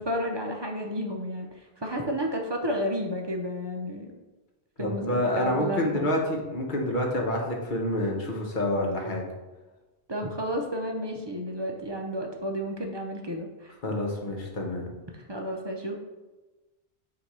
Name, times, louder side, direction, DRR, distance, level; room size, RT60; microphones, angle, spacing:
voice 1, 0.0-4.1 4.8-6.1 10.1-13.7 15.1-16.0, equal, 30° right, 1 dB, 0.6 m, -32 dB
voice 2, 4.8-9.2 13.8-14.8, left 1 dB, 50° left, 0 dB, 1.1 m, -28 dB
6.9 x 2.9 x 4.7 m, 1.2 s
omnidirectional pair, 1.2 m